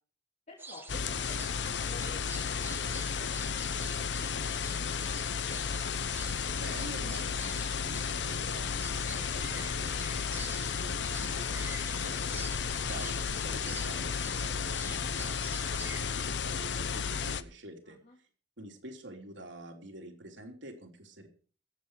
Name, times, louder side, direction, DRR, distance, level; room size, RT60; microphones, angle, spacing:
voice 1, 0.5-5.6 17.8-18.2, left 2 dB, 40° left, -2 dB, 2.8 m, -54 dB
sound 1, 0.6-16.0, right 3 dB, 10° right, 1.4 m, -48 dB
sound 2, 0.9-17.4, left 6 dB, 70° left, 0.8 m, -33 dB
voice 2, 6.6-12.3 12.9-15.3 15.6-18.0 18.6-21.3, right 1 dB, 85° right, 1 dB, 3.4 m, -48 dB
22.0 x 8.2 x 4.8 m, 0.40 s
head